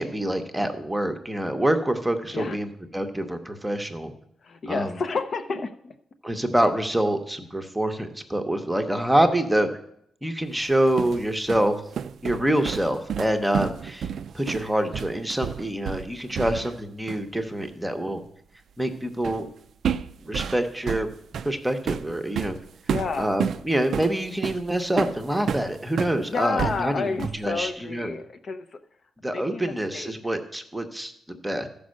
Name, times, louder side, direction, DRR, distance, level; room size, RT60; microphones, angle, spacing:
voice 1, 0.0-4.1 4.7-5.0 6.2-9.7 10.2-11.8 12.2-14.1 14.3-18.2 18.8-19.5 20.2-21.1 21.4-22.6 23.2-28.1 29.2-31.7, right 1 dB, 5° right, 6 dB, 0.8 m, -26 dB
voice 2, 4.4-5.9 22.9-23.4 26.3-28.8 29.3-30.1, left 4 dB, 40° left, 7 dB, 0.6 m, -30 dB
sound 1, 10.6-16.8 17.1-17.3 19.2-19.5 19.8-26.2 26.6-27.5, right 8 dB, 55° right, 0.3 m, -31 dB
13.5 x 5.2 x 6.4 m, 0.72 s
cardioid pair, 145°, 0 cm